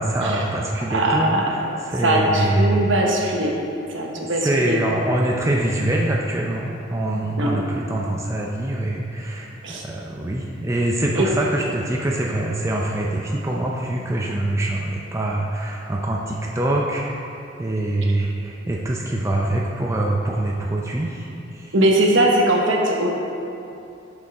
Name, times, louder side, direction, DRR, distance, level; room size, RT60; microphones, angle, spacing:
voice 1, 0.0-1.6 1.9-2.9 4.4-17.1 17.6-21.7, right 1 dB, 15° right, -2 dB, 0.4 m, -24 dB
voice 2, 0.9-1.5 2.0-3.5 3.9-4.8 7.4-7.6 9.6-9.8 11.2-11.3 21.7-23.1, right 1 dB, 65° right, -1 dB, 1.1 m, -20 dB
11.0 x 5.3 x 3.5 m, 2.8 s
head